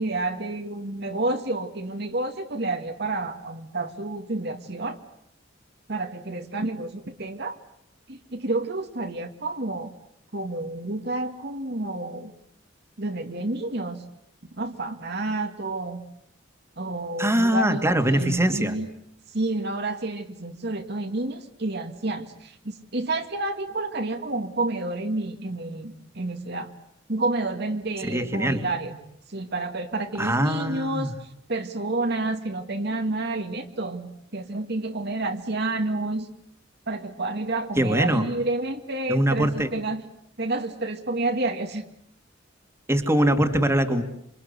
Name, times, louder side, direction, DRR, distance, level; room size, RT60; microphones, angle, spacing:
voice 1, 0.0-5.0 5.9-7.6 8.1-9.9 10.3-12.3 13.0-14.0 14.5-16.0 16.8-18.9 19.3-26.7 27.1-29.0 29.3-31.1 31.5-36.3 36.9-40.0 40.4-41.9 43.2-43.3, right 2 dB, 60° right, 5 dB, 2.1 m, -29 dB
voice 2, 17.2-18.8 28.0-28.6 30.2-31.2 37.8-38.2 39.1-39.7 42.9-44.0, right 1 dB, 15° right, 5 dB, 2.3 m, -22 dB
27.5 x 26.0 x 8.2 m, 0.72 s
head